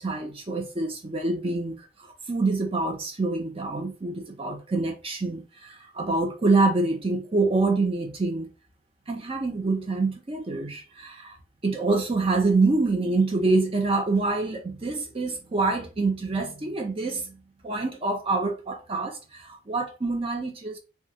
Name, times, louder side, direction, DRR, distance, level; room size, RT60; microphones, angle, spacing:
voice 1, 0.0-1.9 2.3-8.5 9.1-11.4 11.6-17.4 17.6-20.8, right 3 dB, 25° right, 0.5 m, -26 dB
3.0 x 2.3 x 2.8 m
head